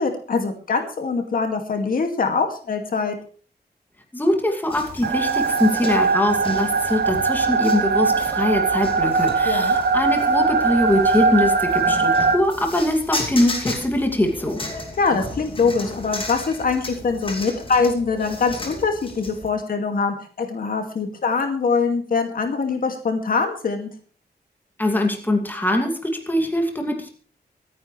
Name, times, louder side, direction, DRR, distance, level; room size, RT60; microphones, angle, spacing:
voice 1, 0.0-3.2 9.5-9.8 15.0-23.9, left 4 dB, 60° left, 5 dB, 2.2 m, -23 dB
voice 2, 4.1-14.6 24.8-27.1, left 1 dB, 10° left, 3 dB, 2.5 m, -22 dB
sound 1, 4.7-19.5, left 2 dB, 30° left, 2.6 m, -35 dB
sound 2, 5.0-12.4, right 4 dB, 75° right, 1.2 m, -20 dB
24.5 x 9.7 x 3.3 m, 0.42 s
wide cardioid pair, 170°, 17 cm